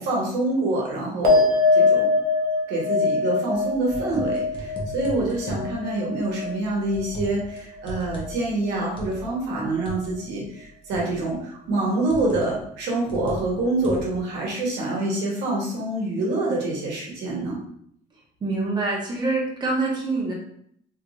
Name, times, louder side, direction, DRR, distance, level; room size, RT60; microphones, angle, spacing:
voice 1, 0.0-2.1 2.7-17.6, right 2 dB, 85° right, -3 dB, 1.1 m, -26 dB
sound 1, 1.2-7.9 8.2-8.9, left 3 dB, 60° right, 0.8 m, -23 dB
sound 2, 3.6-5.7 6.4-7.6 7.8-10.1 10.9-11.3 12.1-12.6 13.1-14.2, equal, 30° left, 1.0 m, -36 dB
voice 2, 18.4-20.3, right 3 dB, 25° right, -3 dB, 1.0 m, -25 dB
3.2 x 3.1 x 2.5 m, 0.67 s
cardioid pair, 110°, 17 cm